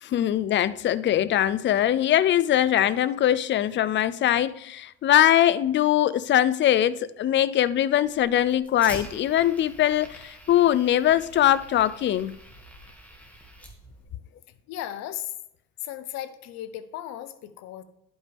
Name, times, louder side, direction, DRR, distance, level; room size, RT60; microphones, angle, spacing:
voice 1, 0.0-12.4, left 11 dB, 40° left, 0.5 m, -22 dB
Fire, 8.0-14.0, equal, 5° left, 2.0 m, -45 dB
voice 2, 14.7-15.3 15.8-17.8, left 12 dB, 65° left, 0.8 m, -36 dB
11.0 x 5.3 x 3.5 m
supercardioid pair, 85°, 29 cm